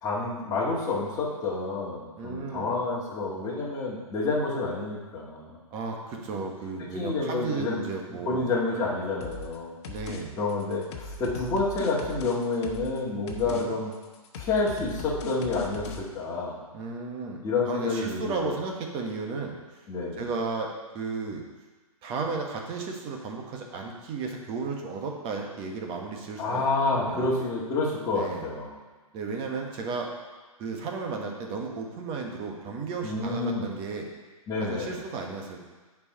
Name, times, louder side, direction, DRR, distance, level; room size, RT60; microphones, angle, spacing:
voice 1, 0.0-5.5 6.9-7.8 8.1-9.7 10.4-13.9 14.4-16.6 17.4-18.5 19.9-20.2 26.4-28.8 33.0-33.7 34.5-34.9, left 3 dB, 20° left, -6 dB, 2.1 m, -29 dB
voice 2, 2.2-2.7 5.7-8.5 9.9-10.4 13.4-13.7 16.7-19.6 20.2-21.4 22.0-26.6 26.9-27.3 28.1-28.5 29.1-30.1 30.6-34.1 34.6-35.6, right 4 dB, 30° right, 1 dB, 1.5 m, -34 dB
sound 1, 9.2-9.6 9.8-10.2 10.5-13.0 13.3-13.6 13.9-16.0, left 4 dB, 50° left, 1.2 m, -39 dB
9.7 x 4.8 x 5.6 m, 1.3 s
hypercardioid pair, 125°, 19 cm